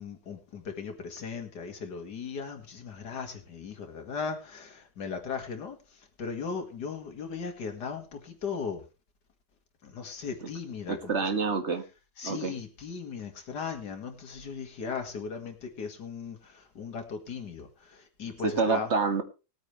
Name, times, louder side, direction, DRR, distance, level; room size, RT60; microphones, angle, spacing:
voice 1, 0.0-8.8 9.8-11.1 12.2-18.9, left 5 dB, 75° left, 4 dB, 2.5 m, -37 dB
voice 2, 10.9-11.8 12.2-12.5 18.4-19.2, right 4 dB, 45° right, 7 dB, 1.8 m, -27 dB
19.5 x 9.0 x 3.3 m, 0.30 s
omnidirectional pair, 1.8 m